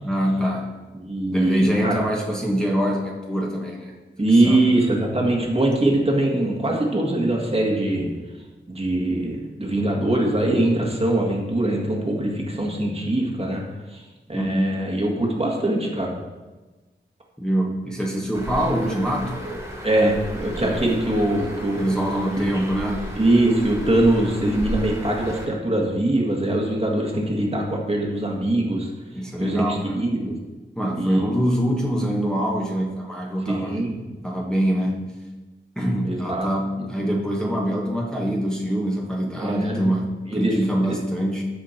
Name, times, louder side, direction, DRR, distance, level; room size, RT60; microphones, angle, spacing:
voice 1, 0.0-0.7 1.3-3.9 4.4-4.6 14.3-14.8 17.4-19.4 20.6-20.9 21.8-23.1 29.1-30.1 30.7-33.9 34.2-35.1 35.7-41.4, equal, 5° left, -3 dB, 1.6 m, -24 dB
voice 2, 0.9-2.0 4.2-8.1 8.7-13.6 13.9-14.0 14.3-16.1 19.8-21.8 22.4-22.5 23.2-28.9 29.4-30.4 31.0-31.3 33.5-34.0 36.0-36.5 39.4-39.9 40.3-40.6 40.9-41.0, right 1 dB, 30° right, -1 dB, 1.8 m, -22 dB
Bird, 18.3-25.5, right 1 dB, 15° right, 2.3 m, -34 dB
14.0 x 5.0 x 4.4 m, 1.2 s
wide cardioid pair, 95°, 20 cm